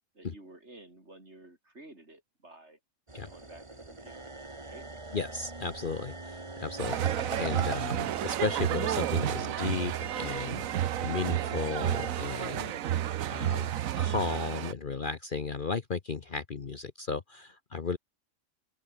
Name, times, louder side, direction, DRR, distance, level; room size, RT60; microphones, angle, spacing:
voice 1, 0.1-2.8 3.2-4.9, right 2 dB, 55° right, 6.0 m, -52 dB
sound 1, 3.1-12.1, right 2 dB, 20° right, 1.9 m, -43 dB
voice 2, 5.1-12.7 13.3-18.0, left 4 dB, 40° left, 1.1 m, -35 dB
sound 2, 6.8-14.7, right 11 dB, 80° right, 1.2 m, -31 dB
open air
omnidirectional pair, 1.4 m